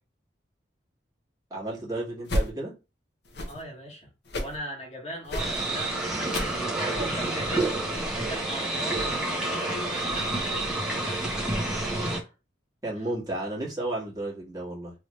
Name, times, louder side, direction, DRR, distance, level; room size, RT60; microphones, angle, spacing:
voice 1, 1.5-2.7 12.8-14.9, right 1 dB, 20° right, 1.5 m, -32 dB
sound 1, 2.2-2.5 3.2-3.6 4.3-4.6 5.2-5.6 6.2-6.6 7.2-7.3, equal, 65° left, 0.8 m, -30 dB
voice 2, 3.5-11.6 11.9-12.3 12.9-13.1, equal, 35° left, 1.3 m, -40 dB
sound 2, 5.4-12.2, right 2 dB, 5° right, 0.8 m, -29 dB
3.3 x 2.9 x 3.0 m
head